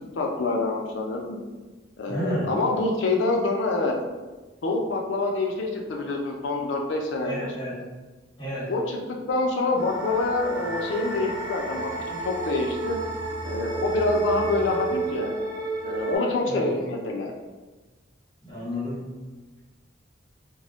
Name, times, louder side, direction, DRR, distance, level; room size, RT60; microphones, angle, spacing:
voice 1, 0.2-1.4 2.0-3.9 4.6-7.5 8.7-8.8 9.3-13.0 13.4-15.3 15.8-17.3, left 3 dB, 75° left, 1 dB, 0.4 m, -26 dB
voice 2, 2.1-2.6 7.2-7.8 8.4-8.7 16.5-16.7 18.5-19.0, equal, 25° left, -8 dB, 0.9 m, -31 dB
sound 1, 9.8-16.2, right 3 dB, 25° right, 0.9 m, -31 dB
2.2 x 2.0 x 3.8 m, 1.2 s
head